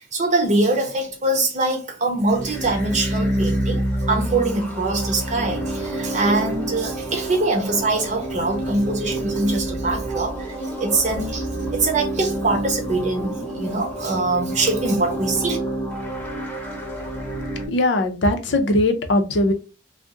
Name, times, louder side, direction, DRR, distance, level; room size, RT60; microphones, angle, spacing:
voice 1, 0.1-15.6, right 2 dB, 40° right, 0.8 m, -23 dB
sound 1, 2.2-17.7, right 1 dB, 10° left, 0.8 m, -28 dB
voice 2, 17.7-19.5, left 1 dB, 80° left, 0.6 m, -20 dB
2.5 x 2.1 x 3.6 m
head